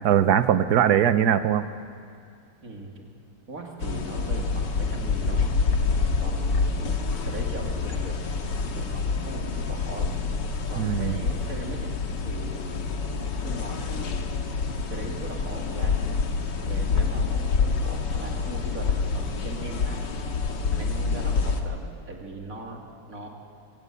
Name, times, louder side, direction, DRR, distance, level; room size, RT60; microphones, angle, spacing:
voice 1, 0.0-1.6 10.8-11.2, right 9 dB, 70° right, 11 dB, 1.4 m, -21 dB
voice 2, 2.6-3.1 3.5-5.9 6.2-8.2 8.8-10.1 10.7-11.9 12.2-12.8 13.4-14.6 14.9-16.0 16.6-20.0 20.7-23.3, right 2 dB, 50° right, 0 dB, 3.1 m, -39 dB
sound 1, 3.8-21.6, left 4 dB, 90° left, 2.2 m, -27 dB
26.0 x 16.0 x 8.4 m, 2.3 s
omnidirectional pair, 1.9 m